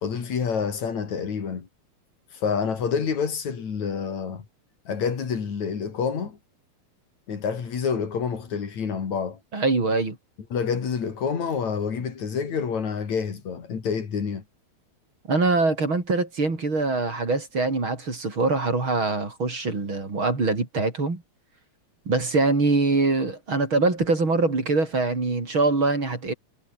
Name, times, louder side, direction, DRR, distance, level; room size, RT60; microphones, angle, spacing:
voice 1, 0.0-1.7 2.3-4.5 4.9-6.4 7.3-9.4 10.5-14.4, left 6 dB, 70° left, 4.5 m, -28 dB
voice 2, 9.5-10.2 15.3-21.2 22.1-26.3, right 3 dB, 40° right, 5.6 m, -23 dB
omnidirectional pair, 3.3 m